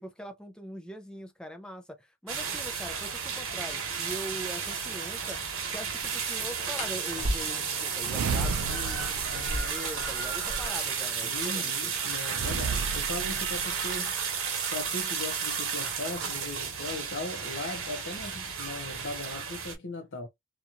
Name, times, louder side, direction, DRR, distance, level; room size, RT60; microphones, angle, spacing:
voice 1, 0.0-5.4 5.7-11.9, equal, 5° left, 0.4 m, -42 dB
sound 1, 2.3-19.7, right 6 dB, 60° right, 1.0 m, -33 dB
sound 2, 6.7-7.8 9.3-10.9 11.2-11.3 11.5-12.1 12.8-15.3 16.3-16.6 17.0-17.5 17.8-18.6, equal, 30° left, 0.9 m, -38 dB
sound 3, 8.0-10.5 12.3-14.0, right 4 dB, 80° right, 0.4 m, -34 dB
voice 2, 11.2-14.1 14.7-20.3, left 2 dB, 55° left, 0.7 m, -38 dB
2.9 x 2.4 x 2.4 m
head